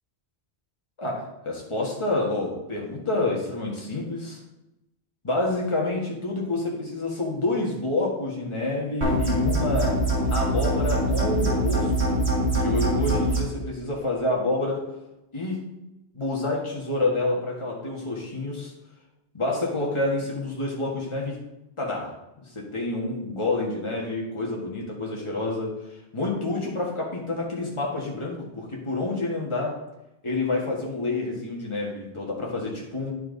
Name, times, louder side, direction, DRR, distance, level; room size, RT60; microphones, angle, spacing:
voice 1, 1.0-4.4 5.2-10.0 10.3-12.2 12.6-14.9 15.3-15.6 16.1-18.7 19.3-21.4 21.8-22.1 22.5-25.7 26.1-29.8 30.2-33.1, left 2 dB, 30° left, -2 dB, 1.6 m, -28 dB
sound 1, 9.0-13.4, right 1 dB, 75° right, 2.2 m, -23 dB
11.0 x 4.5 x 3.9 m, 0.93 s
omnidirectional pair, 1.1 m